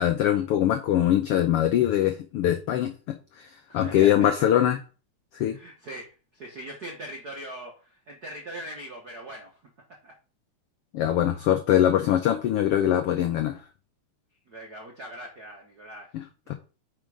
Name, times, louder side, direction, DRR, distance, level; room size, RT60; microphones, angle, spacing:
voice 1, 0.0-4.8 5.3-5.6 10.9-13.6 16.1-16.2, left 11 dB, 80° left, 7 dB, 1.3 m, -23 dB
voice 2, 3.7-4.5 5.5-9.6 10.0-10.1 14.5-16.5, right 1 dB, 45° right, 0 dB, 1.3 m, -41 dB
9.0 x 5.0 x 4.9 m, 0.35 s
omnidirectional pair, 3.5 m